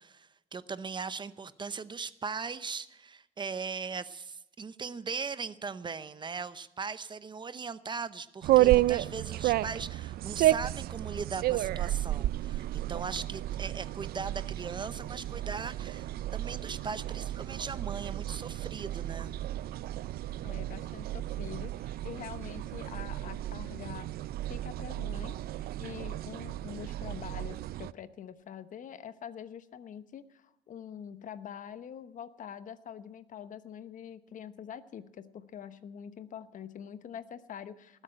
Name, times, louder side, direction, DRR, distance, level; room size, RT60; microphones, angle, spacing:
voice 1, 0.0-19.3, right 5 dB, 25° right, 14 dB, 0.7 m, -39 dB
sound 1, 8.4-27.9, right 15 dB, 65° right, 0.5 m, -32 dB
voice 2, 20.4-24.2 24.5-38.0, left 8 dB, 50° left, 13 dB, 1.0 m, -45 dB
19.0 x 8.1 x 8.9 m, 0.90 s
cardioid pair, 110°, 17 cm